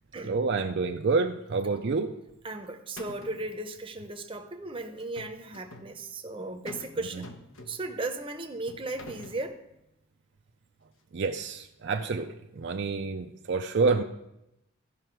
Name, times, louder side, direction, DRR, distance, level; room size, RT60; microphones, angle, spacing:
voice 1, 0.2-2.1 7.1-7.2 11.1-14.0, right 4 dB, 55° right, 5 dB, 0.5 m, -28 dB
sound 1, 2.3-2.6 3.0-3.5 5.0-5.9 6.7-6.9 7.2-8.0 8.7-9.4, left 2 dB, 75° left, 1.1 m, -46 dB
voice 2, 2.4-7.3 7.7-9.6, right 2 dB, 25° right, 5 dB, 0.7 m, -36 dB
14.5 x 5.6 x 4.5 m, 0.88 s
head